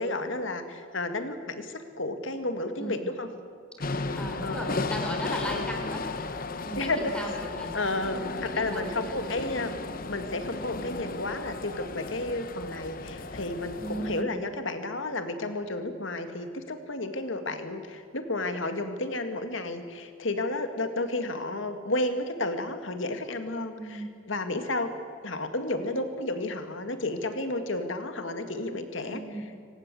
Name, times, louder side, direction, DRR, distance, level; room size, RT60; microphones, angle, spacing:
voice 1, 0.0-3.3 4.0-4.2 4.4-4.9 5.6-5.7 6.8-7.3 7.7-9.7 10.1-24.9 25.2-29.5, left 2 dB, 70° left, 8 dB, 2.1 m, -32 dB
voice 2, 2.7-3.1 4.1-6.0 6.6-7.7 8.1-9.2 13.8-14.4 23.7-24.1 29.0-29.5, equal, 5° left, 1 dB, 4.3 m, -37 dB
sound 1, 3.8-14.2, left 3 dB, 45° left, 1.0 m, -35 dB
24.5 x 18.5 x 7.8 m, 2.2 s
head